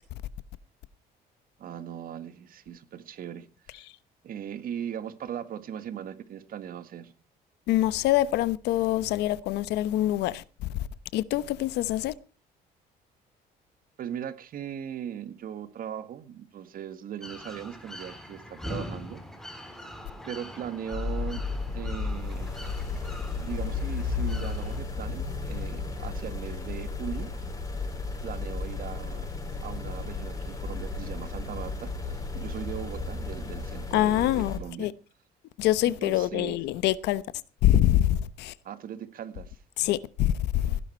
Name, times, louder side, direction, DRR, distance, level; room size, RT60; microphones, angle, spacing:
voice 1, 1.6-3.8 4.2-7.1 14.0-19.2 19.5-19.6 20.3-21.4 21.7-22.5 23.4-27.3 27.8-27.9 28.2-29.3 29.6-34.9 35.8-36.6 38.6-39.6 40.5-40.8, right 9 dB, 55° right, 1.8 m, -39 dB
voice 2, 7.7-10.7 11.1-12.1 33.9-34.9 35.6-37.2 37.6-38.5 39.8-40.7, left 13 dB, 85° left, 1.0 m, -25 dB
sound 1, 17.2-24.8, equal, ahead, 3.5 m, -43 dB
sound 2, 20.9-34.6, left 4 dB, 20° left, 6.0 m, -33 dB
16.5 x 11.5 x 4.5 m
cardioid pair, 110°, 17 cm